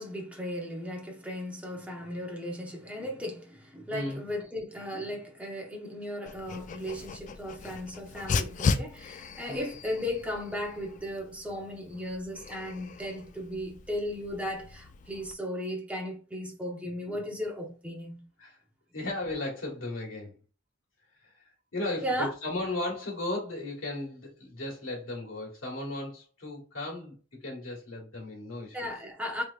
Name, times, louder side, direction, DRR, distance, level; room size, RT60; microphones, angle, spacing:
voice 1, 0.0-18.2 22.0-22.3 28.7-29.4, left 1 dB, 5° right, 0.8 m, -36 dB
voice 2, 3.9-4.2 9.5-9.7 18.4-18.5 18.9-20.3 21.2-21.3 21.7-27.1 27.4-28.8, left 2 dB, 90° left, 1.6 m, -35 dB
Dog, 6.3-15.3, left 4 dB, 40° left, 0.3 m, -36 dB
3.2 x 3.2 x 2.4 m
head